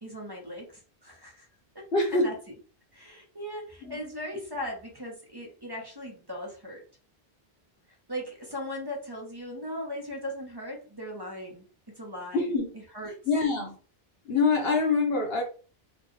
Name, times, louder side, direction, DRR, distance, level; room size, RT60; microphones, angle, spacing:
voice 1, 0.0-1.5 1.7-1.9 2.1-2.4 2.9-6.8 8.1-12.4 12.7-13.1, left 1 dB, 25° right, 0.9 m, -38 dB
voice 2, 1.9-2.3 3.8-4.0 12.3-12.7 13.3-13.8 14.2-15.4, left 3 dB, 70° left, 1.3 m, -25 dB
4.2 x 2.4 x 3.1 m
omnidirectional pair, 1.0 m